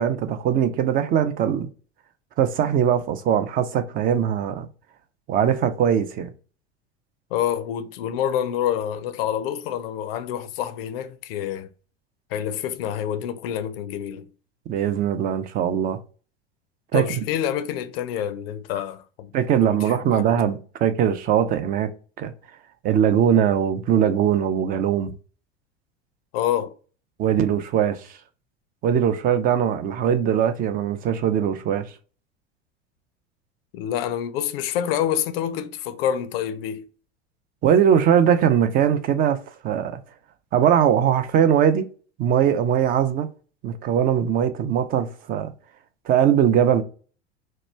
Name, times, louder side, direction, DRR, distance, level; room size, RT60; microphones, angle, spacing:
voice 1, 0.0-1.7 2.4-4.7 5.3-6.3 14.7-16.0 16.9-17.2 19.3-21.9 22.2-22.3 22.8-25.1 27.2-28.2 28.8-31.9 37.6-39.4 39.6-40.0 40.5-41.9 42.2-43.3 43.6-45.5 46.1-46.8, right 9 dB, 25° right, 0.4 m, -21 dB
voice 2, 7.3-11.7 12.3-14.3 16.9-19.3 19.6-20.4 26.3-26.7 33.7-36.9, left 10 dB, 60° left, 0.5 m, -27 dB
2.9 x 2.2 x 3.1 m
figure-of-eight pair, 80°, 34 cm